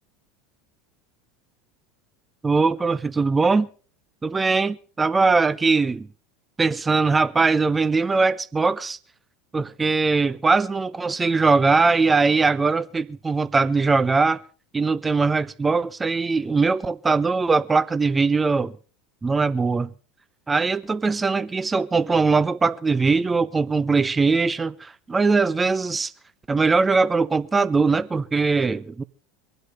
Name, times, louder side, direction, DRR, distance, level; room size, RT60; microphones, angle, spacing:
voice 1, 2.4-3.7 4.2-6.1 6.6-9.0 9.5-14.4 14.7-18.7 19.2-19.9 20.5-26.1 26.5-29.0, right 4 dB, 15° right, 0.6 m, -21 dB
24.0 x 8.0 x 5.2 m
figure-of-eight pair, 75°, 0 cm